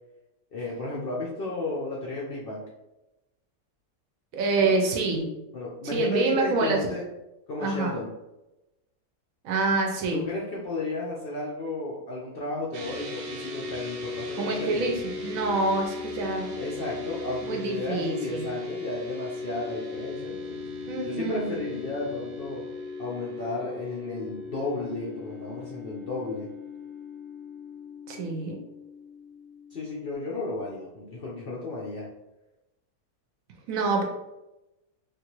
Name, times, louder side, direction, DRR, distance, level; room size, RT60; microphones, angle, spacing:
voice 1, 0.5-2.7 4.6-4.8 5.5-7.0 7.5-8.1 10.1-14.9 16.5-20.6 21.0-22.6 23.0-26.5 29.7-32.1, left 2 dB, 65° left, -4 dB, 0.5 m, -33 dB
voice 2, 4.3-5.3 5.9-6.8 7.6-7.9 9.4-10.2 14.4-16.5 17.4-18.5 20.9-21.7 28.1-28.6 33.7-34.0, right 3 dB, 70° right, 2 dB, 0.9 m, -26 dB
sound 1, 12.7-30.1, left 3 dB, 90° right, 1.2 m, -37 dB
3.3 x 2.4 x 3.0 m, 0.97 s
omnidirectional pair, 1.7 m